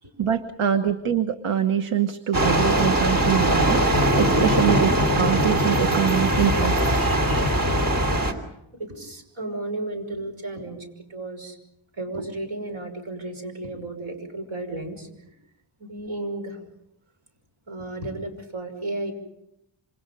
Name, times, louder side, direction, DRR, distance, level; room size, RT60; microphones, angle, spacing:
voice 1, 0.2-6.8, right 9 dB, 90° right, 10 dB, 1.2 m, -24 dB
sound 1, 2.3-8.3, right 1 dB, 45° right, 3.0 m, -21 dB
voice 2, 7.0-7.5 8.7-11.6 12.0-15.3 15.8-16.6 17.7-19.1, right 2 dB, 75° right, 4 dB, 5.8 m, -34 dB
27.5 x 26.5 x 5.3 m, 0.83 s
wide cardioid pair, 150°, 49 cm